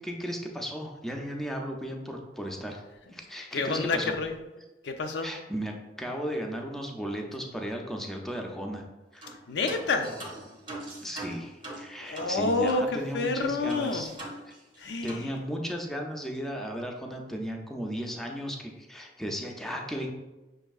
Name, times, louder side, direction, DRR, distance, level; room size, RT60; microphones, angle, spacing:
voice 1, 0.0-2.8 3.1-4.1 5.2-8.8 9.1-9.3 11.0-14.1 14.5-14.6 15.0-20.1, equal, ahead, 1 dB, 0.4 m, -35 dB
voice 2, 3.5-4.4 4.8-5.3 9.5-10.1 12.0-14.0 14.8-15.3, left 3 dB, 80° left, 6 dB, 0.5 m, -28 dB
sound 1, 9.2-9.4 9.7-12.9 13.2-13.3 13.7-14.8 15.1-15.3, right 1 dB, 30° right, 0.7 m, -41 dB
6.0 x 2.6 x 2.3 m, 1.1 s
head